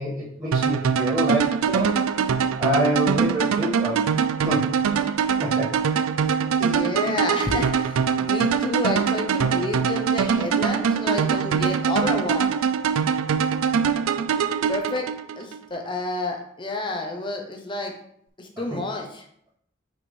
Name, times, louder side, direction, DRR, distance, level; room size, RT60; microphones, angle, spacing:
voice 1, 0.0-2.0 2.6-4.0 4.4-4.7 5.2-5.7 18.7-18.8, right 1 dB, 15° right, -12 dB, 1.7 m, -26 dB
sound 1, 0.5-15.6, right 6 dB, 80° right, 0.4 m, -23 dB
voice 2, 6.6-12.5 14.7-15.1 15.4-17.9 18.4-19.2, left 2 dB, 25° left, 3 dB, 0.8 m, -29 dB
6.1 x 4.8 x 3.3 m, 0.69 s
head